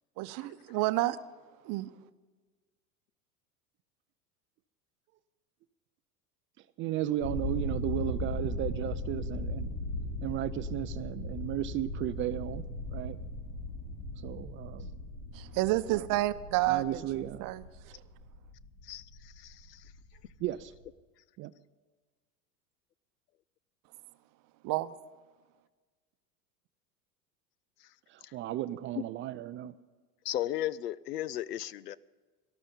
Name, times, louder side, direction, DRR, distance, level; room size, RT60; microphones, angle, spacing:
voice 1, 0.2-1.2 1.6-1.9 15.3-17.6 24.6-24.9, right 17 dB, 45° right, 14 dB, 0.8 m, -30 dB
voice 2, 6.8-9.7 10.2-12.6 12.9-13.2 14.2-14.9 16.7-17.5 17.9-18.0 20.4-20.7 21.4-21.5 28.1-29.8, right 13 dB, 30° right, 13 dB, 0.4 m, -35 dB
sound 1, 7.2-20.8, left 2 dB, 60° left, 4.4 m, -38 dB
voice 3, 18.8-19.9 28.2-28.3 30.2-32.0, left 12 dB, 85° left, 21 dB, 0.6 m, -36 dB
18.0 x 12.5 x 5.3 m, 1.4 s
hypercardioid pair, 85°, 47 cm